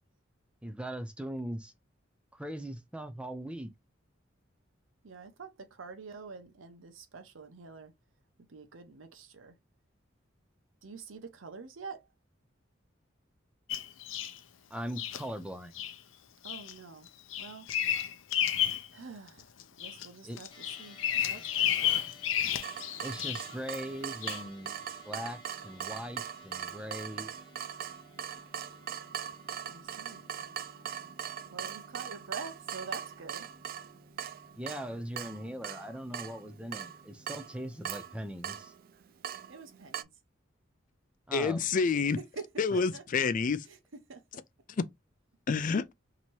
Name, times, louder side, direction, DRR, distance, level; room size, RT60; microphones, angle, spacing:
voice 1, 0.6-1.7 2.3-3.7 14.7-15.8 20.2-20.4 23.0-27.3 34.6-38.7 41.3-41.7, equal, 5° right, 0.6 m, -40 dB
voice 2, 5.0-7.9 8.5-9.6 10.8-12.1 16.4-17.1 17.4-17.7 18.9-19.5 19.8-22.0 29.7-30.3 31.5-33.5 39.5-40.1 42.2-43.0 43.6-44.2, right 4 dB, 85° right, 0.8 m, -46 dB
Bird vocalization bird call bird song, 13.7-14.4 15.0-15.2 15.7-15.9 16.4-16.7 17.1-18.9 19.3-20.1 20.4-23.5 24.2-24.4, left 10 dB, 85° left, 0.6 m, -31 dB
sound 1, 20.5-38.0, left 3 dB, 25° left, 0.9 m, -58 dB
Water tap faucet / Drip, 22.6-40.0, right 8 dB, 50° right, 0.3 m, -41 dB
voice 3, 41.3-42.2 42.6-43.6 45.5-45.8, left 5 dB, 45° left, 0.4 m, -28 dB
2.9 x 2.7 x 4.4 m
head